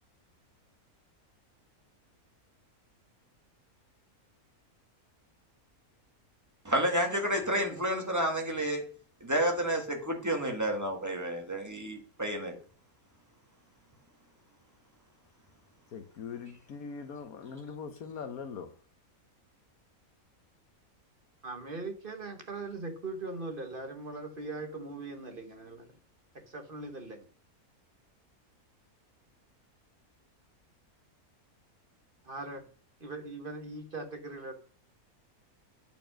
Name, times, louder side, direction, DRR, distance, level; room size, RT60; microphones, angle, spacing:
voice 1, 6.6-8.9 9.2-12.5, right 1 dB, 10° right, 1.8 m, -30 dB
voice 2, 15.9-18.7, left 6 dB, 75° left, 1.4 m, -41 dB
voice 3, 21.4-25.9 26.5-27.3 32.2-32.6 33.0-34.5, right 3 dB, 40° right, 1.3 m, -40 dB
9.0 x 5.3 x 6.2 m
omnidirectional pair, 1.6 m